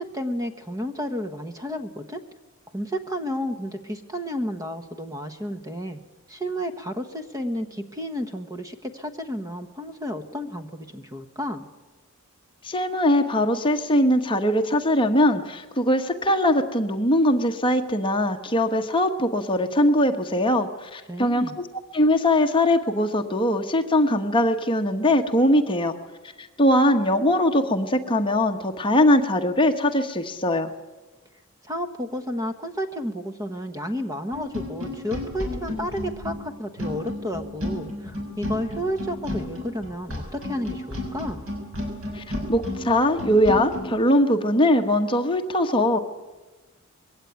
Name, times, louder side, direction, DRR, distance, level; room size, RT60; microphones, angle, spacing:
voice 1, 0.0-2.2 2.7-6.0 6.3-11.7 21.1-21.6 31.6-41.5, equal, 15° right, 8 dB, 1.2 m, -31 dB
voice 2, 12.6-21.7 21.9-25.9 26.4-30.7 42.1-42.2 42.5-46.0, left 1 dB, 25° left, 5 dB, 1.3 m, -21 dB
sound 1, 34.3-43.9, left 1 dB, 70° right, 6.3 m, -32 dB
22.0 x 16.5 x 9.5 m, 1.2 s
head